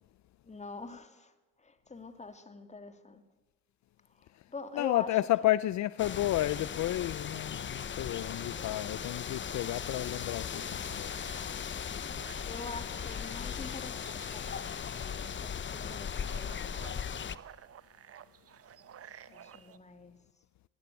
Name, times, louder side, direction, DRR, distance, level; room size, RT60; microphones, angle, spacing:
voice 1, 0.4-1.3 1.6-3.2 4.1-5.1 11.7-12.1 12.5-16.9 19.3-20.1, left 3 dB, 20° left, 2.3 m, -45 dB
voice 2, 4.7-10.6 10.9-11.1, left 15 dB, 65° left, 0.6 m, -31 dB
sound 1, 6.0-17.4, left 7 dB, 40° left, 0.9 m, -38 dB
sound 2, 10.5-19.8, right 9 dB, 50° right, 1.0 m, -55 dB
19.0 x 16.5 x 9.1 m
cardioid pair, 90°, 30 cm